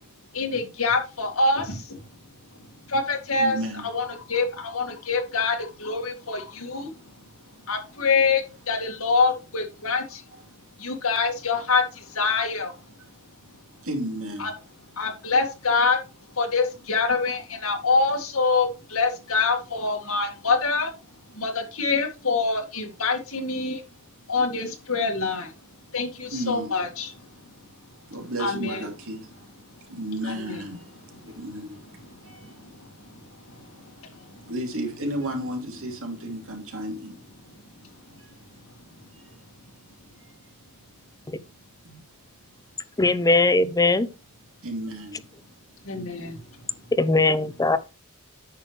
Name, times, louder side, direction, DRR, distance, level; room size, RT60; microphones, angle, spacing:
voice 1, 0.3-2.0 2.9-3.6 3.8-6.9 7.7-10.2 10.8-12.7 14.4-14.5 15.0-16.0 16.4-20.9 21.3-23.8 24.3-25.5 25.9-27.1 28.4-28.8 31.2-31.3 32.2-32.9 33.5-33.8 34.1-34.2 45.8-46.4, left 4 dB, 65° left, 2.1 m, -25 dB
voice 2, 3.4-3.9 10.3-10.4 13.8-14.5 26.3-26.7 28.1-29.3 29.9-30.8 31.4-31.8 32.3-32.4 34.5-37.2 41.8-42.0 44.6-45.2, right 1 dB, 65° right, 2.8 m, -32 dB
voice 3, 43.0-44.1 47.0-47.8, left 2 dB, 15° left, 0.6 m, -20 dB
9.3 x 6.4 x 3.3 m
head